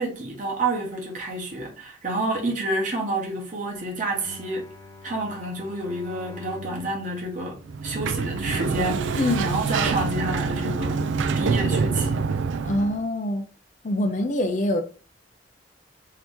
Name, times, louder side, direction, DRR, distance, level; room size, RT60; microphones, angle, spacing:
voice 1, 0.0-4.7 5.0-7.6 7.8-11.0 11.3-12.2, right 2 dB, 40° right, 0.9 m, -29 dB
Bowed string instrument, 4.1-8.5, left 2 dB, 25° left, 1.1 m, -45 dB
Sliding door, 7.7-13.0, right 4 dB, 75° right, 0.3 m, -26 dB
voice 2, 9.2-9.5 12.6-13.4 13.8-14.8, left 1 dB, 40° left, 0.5 m, -24 dB
2.8 x 2.8 x 3.4 m
head